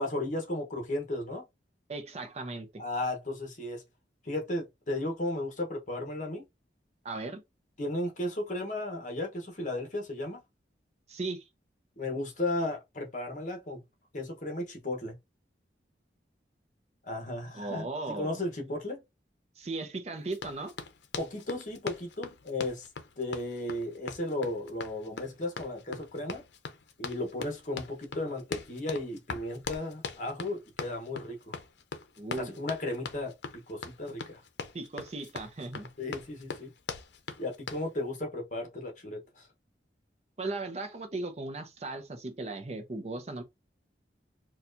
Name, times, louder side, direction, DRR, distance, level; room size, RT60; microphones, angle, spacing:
voice 1, 0.0-1.4 2.8-3.8 4.2-6.4 7.8-10.4 12.0-13.8 14.1-15.2 17.0-19.0 21.2-22.9 23.2-26.4 27.0-31.6 32.4-34.4 36.0-36.7 37.4-39.5, left 1 dB, 45° left, 1.1 m, -35 dB
voice 2, 1.9-2.8 7.0-7.4 11.1-11.5 17.5-18.4 19.6-20.7 32.2-32.6 34.7-35.9 40.4-43.4, right 2 dB, 40° right, 0.6 m, -37 dB
Run, 20.3-37.9, left 4 dB, 75° left, 0.6 m, -41 dB
4.3 x 2.4 x 2.6 m
head